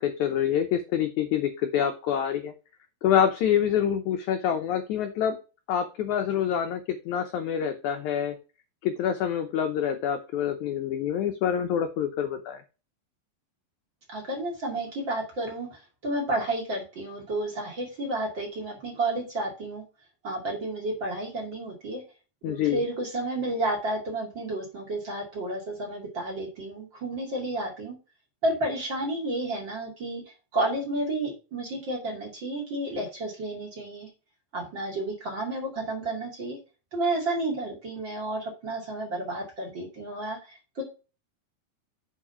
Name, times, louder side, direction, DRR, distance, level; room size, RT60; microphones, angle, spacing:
voice 1, 0.0-2.5 3.0-5.3 5.7-8.3 8.8-12.6 22.4-22.8, left 9 dB, 80° left, 7 dB, 1.7 m, -26 dB
voice 2, 14.1-19.8 20.2-22.0 22.4-28.0 28.4-34.1 34.5-36.6 36.9-40.8, right 2 dB, 35° right, 0 dB, 2.4 m, -31 dB
7.4 x 4.8 x 5.6 m, 0.32 s
omnidirectional pair, 4.3 m